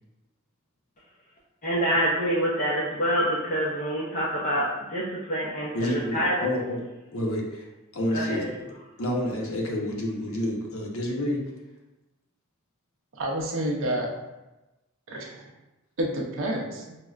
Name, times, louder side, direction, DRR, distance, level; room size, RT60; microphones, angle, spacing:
voice 1, 1.6-6.4 8.1-8.5, equal, 40° left, -5 dB, 0.5 m, -26 dB
voice 2, 5.7-6.8 7.1-7.7 7.9-8.7 9.0-11.4, left 1 dB, 75° left, -1 dB, 0.7 m, -29 dB
voice 3, 13.1-14.1 15.1-15.5 16.0-17.0, right 1 dB, 65° right, 0 dB, 0.5 m, -29 dB
4.5 x 2.0 x 2.3 m, 1.0 s
head